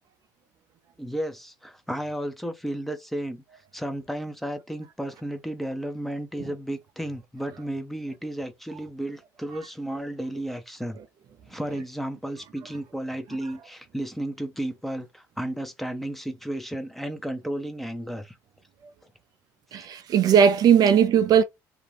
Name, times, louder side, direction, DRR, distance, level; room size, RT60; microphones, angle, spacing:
voice 1, 1.0-3.4 3.7-11.0 11.5-18.3, right 1 dB, ahead, 0.6 m, -33 dB
voice 2, 19.7-21.4, right 8 dB, 50° right, 0.4 m, -18 dB
2.4 x 2.1 x 3.2 m
supercardioid pair, 80°, 8 cm